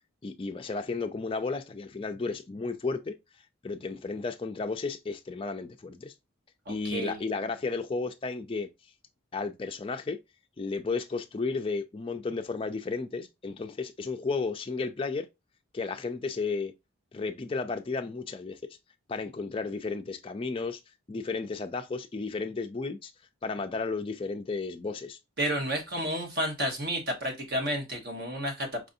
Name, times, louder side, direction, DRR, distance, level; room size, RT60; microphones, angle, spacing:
voice 1, 0.2-3.1 3.6-6.1 6.7-8.7 9.3-10.2 10.6-15.3 15.7-16.7 17.1-18.6 19.1-20.8 21.1-23.1 23.4-25.2, left 4 dB, 25° left, 0.3 m, -33 dB
voice 2, 6.7-7.2 25.4-28.8, equal, 50° right, 1.1 m, -31 dB
4.7 x 2.6 x 2.6 m
head